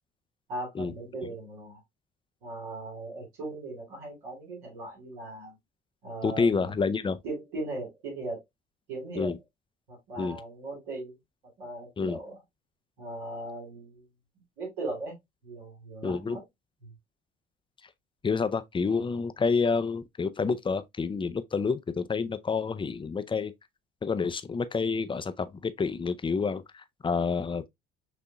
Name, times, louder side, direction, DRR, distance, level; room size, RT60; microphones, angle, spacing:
voice 1, 0.5-1.8 2.4-5.6 6.0-6.7 7.2-8.4 8.9-9.4 9.9-11.2 11.6-12.4 13.0-14.1 14.6-15.2 15.4-16.4 16.8-16.9, right 2 dB, 85° right, 2.3 m, -38 dB
voice 2, 6.2-7.2 9.2-9.4 10.2-10.4 12.0-12.2 16.0-16.4 18.2-23.5 24.0-27.7, left 5 dB, 15° left, 0.4 m, -28 dB
6.1 x 2.7 x 2.2 m
hypercardioid pair, 60°, 29 cm